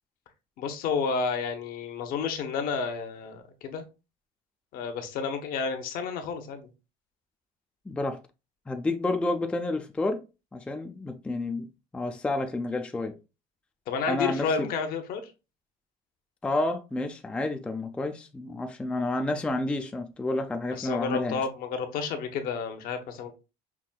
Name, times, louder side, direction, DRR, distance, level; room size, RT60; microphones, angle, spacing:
voice 1, 0.6-3.8 4.7-6.7 13.9-15.3 20.7-23.4, left 5 dB, 60° left, 0.9 m, -31 dB
voice 2, 7.9-8.2 8.7-10.2 10.5-11.7 11.9-13.1 14.1-14.7 16.4-21.4, left 2 dB, 5° left, 0.4 m, -30 dB
5.9 x 2.6 x 2.2 m
cardioid pair, 135°, 17 cm